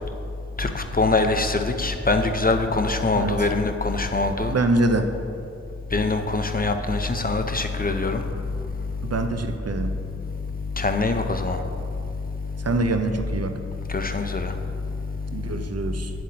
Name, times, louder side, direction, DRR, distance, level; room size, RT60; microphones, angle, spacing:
voice 1, 0.6-4.5 5.9-8.2 10.8-11.6 13.9-14.5, left 3 dB, 30° left, 6 dB, 0.5 m, -23 dB
voice 2, 3.1-3.5 4.5-5.1 9.0-9.9 12.6-13.6 15.3-16.1, right 2 dB, 55° right, 7 dB, 0.6 m, -24 dB
8.9 x 7.5 x 2.9 m, 2.6 s
wide cardioid pair, 45°, 29 cm